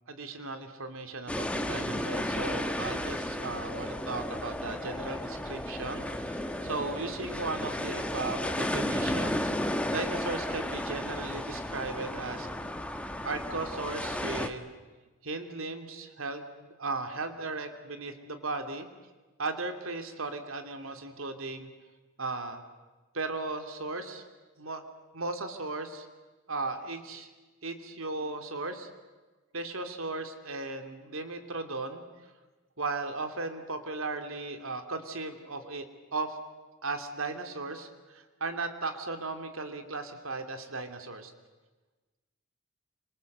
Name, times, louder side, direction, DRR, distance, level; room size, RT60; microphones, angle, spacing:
voice 1, 0.1-12.5 13.2-14.7 15.2-18.9 19.4-21.7 22.2-22.6 23.1-24.2 24.6-24.8 25.1-26.1 26.5-27.3 27.6-28.9 29.5-32.0 32.8-35.9 36.1-36.4 36.8-41.3, right 3 dB, 75° right, 7 dB, 2.8 m, -36 dB
sound 1, 1.3-14.5, left 1 dB, 5° left, 1.5 m, -33 dB
28.5 x 25.5 x 8.0 m, 1.2 s
head